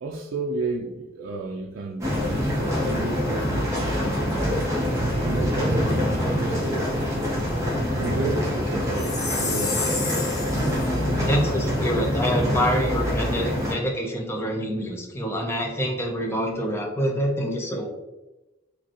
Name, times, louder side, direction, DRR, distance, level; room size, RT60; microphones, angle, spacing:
voice 1, 0.0-4.6 5.2-7.0 7.9-9.9, right 3 dB, 70° right, -1 dB, 0.4 m, -32 dB
sound 1, 2.0-13.7, equal, 15° right, 0.8 m, -25 dB
Chime, 8.9-10.9, left 3 dB, 50° left, 0.7 m, -30 dB
voice 2, 11.2-17.9, equal, 10° left, 1 dB, 0.5 m, -26 dB
4.9 x 2.2 x 2.9 m, 1.0 s
head